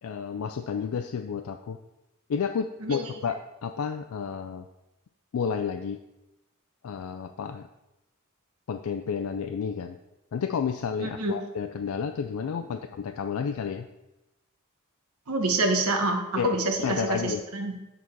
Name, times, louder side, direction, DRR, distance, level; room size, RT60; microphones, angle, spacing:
voice 1, 0.0-1.8 2.3-4.7 5.3-6.0 6.8-7.7 8.7-10.0 10.3-13.9 16.4-16.5 16.8-17.4, left 6 dB, 70° left, 7 dB, 0.4 m, -31 dB
voice 2, 11.0-11.3 15.3-17.8, right 2 dB, 90° right, 3 dB, 1.2 m, -27 dB
8.5 x 4.1 x 4.5 m, 0.94 s
head